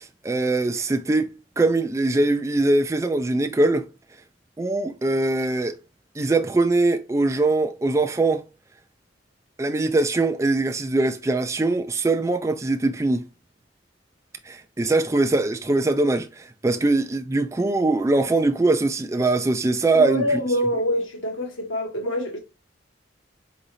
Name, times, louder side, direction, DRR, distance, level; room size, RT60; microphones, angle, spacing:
voice 1, 0.0-3.9 4.6-5.8 6.2-8.5 9.6-13.2 14.4-20.4, right 2 dB, 15° right, 0.3 m, -22 dB
voice 2, 19.9-22.4, left 1 dB, 90° left, 1.7 m, -25 dB
3.9 x 3.9 x 3.1 m
head